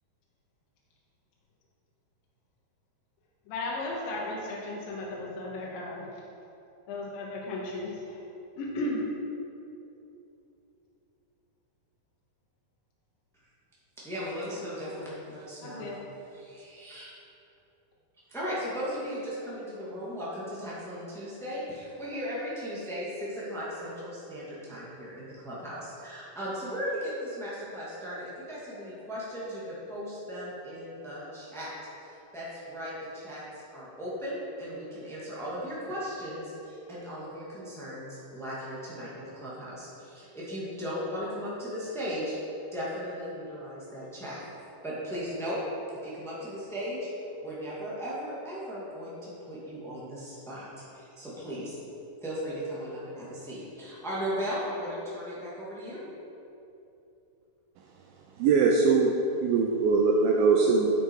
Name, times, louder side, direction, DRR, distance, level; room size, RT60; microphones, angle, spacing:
voice 1, 3.5-6.1 6.9-8.2 8.6-9.0 15.6-16.1, left 2 dB, 70° left, -4 dB, 2.7 m, -35 dB
voice 2, 14.0-15.9 16.3-17.1 18.3-31.7 32.0-42.3 42.7-44.4 44.8-45.6 46.0-47.0 47.4-51.8 52.2-56.1, equal, ahead, -8 dB, 1.0 m, -37 dB
voice 3, 58.4-59.2 59.4-60.9, right 4 dB, 80° right, 0 dB, 2.3 m, -22 dB
9.4 x 8.0 x 4.8 m, 2.9 s
omnidirectional pair, 4.5 m